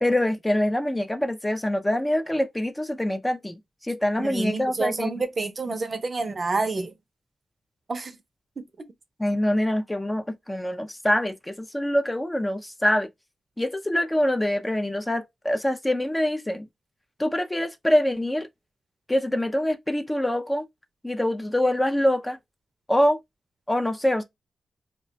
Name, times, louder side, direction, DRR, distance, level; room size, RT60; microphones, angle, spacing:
voice 1, 0.0-3.5 3.8-5.1 5.7-5.8 9.2-13.1 13.6-16.7 17.2-18.5 19.1-20.6 21.0-22.4 22.9-23.2 23.7-24.2, left 1 dB, 15° left, 0.4 m, -24 dB
voice 2, 4.2-6.9 7.9-8.1 8.6-8.9, right 3 dB, 45° right, 0.6 m, -28 dB
2.3 x 2.2 x 3.8 m
cardioid pair, 65°, 0 cm